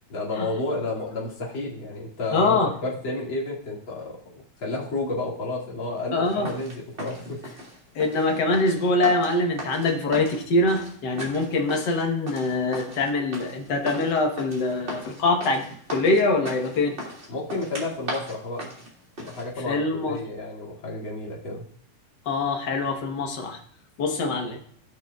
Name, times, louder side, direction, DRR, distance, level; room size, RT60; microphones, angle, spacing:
voice 1, 0.1-7.4 17.3-18.7 19.2-21.7, left 2 dB, 40° left, -4 dB, 2.9 m, -31 dB
voice 2, 2.3-2.7 6.1-6.5 7.9-17.0 19.7-20.2 22.2-23.6 24.0-24.6, left 2 dB, 65° left, 2 dB, 1.0 m, -24 dB
sound 1, 6.2-19.5, equal, 25° right, 2.3 m, -38 dB
17.0 x 6.3 x 2.3 m, 0.63 s
omnidirectional pair, 3.6 m